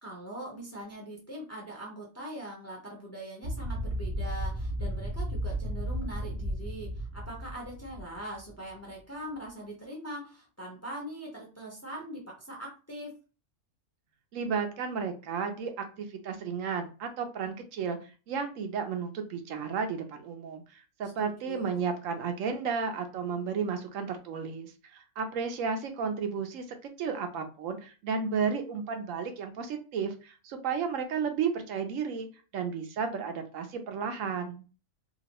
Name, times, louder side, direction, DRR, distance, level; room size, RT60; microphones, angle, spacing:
voice 1, 0.0-13.1 21.2-21.8, equal, 15° left, -1 dB, 0.6 m, -42 dB
sound 1, 3.4-8.5, right 1 dB, 35° right, 0.4 m, -34 dB
voice 2, 14.3-26.6 27.0-32.3 32.5-34.6, right 6 dB, 80° right, 5 dB, 1.0 m, -33 dB
2.9 x 2.5 x 2.9 m, 0.34 s
omnidirectional pair, 1.4 m